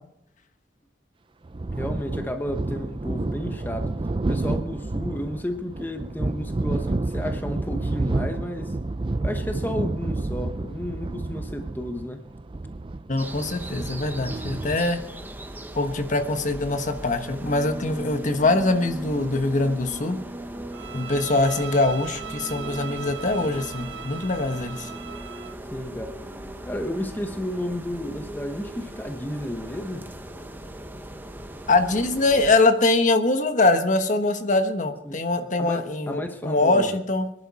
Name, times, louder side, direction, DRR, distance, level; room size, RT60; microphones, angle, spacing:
sound 1, 1.5-14.8, right 2 dB, 30° right, 0.5 m, -29 dB
voice 1, 1.8-3.9 4.3-8.8 9.2-12.2 25.7-26.2 26.6-30.1 35.0-35.2 35.6-37.0, equal, 10° left, 6 dB, 1.0 m, -32 dB
voice 2, 13.1-15.0 15.7-20.2 20.9-24.9 31.7-37.3, left 2 dB, 45° left, 7 dB, 1.3 m, -23 dB
sound 2, 13.2-32.6, right 1 dB, 10° right, 1.0 m, -38 dB
Bowed string instrument, 20.7-25.6, right 8 dB, 80° right, 0.7 m, -39 dB
25.0 x 11.0 x 4.2 m, 0.74 s
head